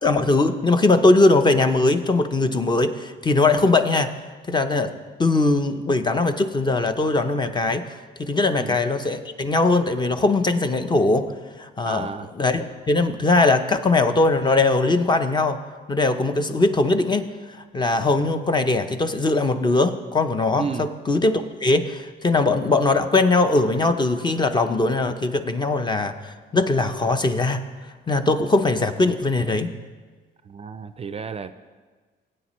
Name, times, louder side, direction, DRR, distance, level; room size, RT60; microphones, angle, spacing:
voice 1, 0.0-4.1 4.5-4.9 5.2-7.8 8.2-11.3 11.6-12.1 12.4-15.6 15.9-27.6 28.1-29.7, left 2 dB, 25° left, 8 dB, 0.6 m, -20 dB
voice 2, 11.8-12.3 20.6-20.9 30.4-31.5, right 5 dB, 35° right, 11 dB, 0.4 m, -32 dB
17.5 x 8.8 x 3.1 m, 1.4 s
cardioid pair, 110°, 19 cm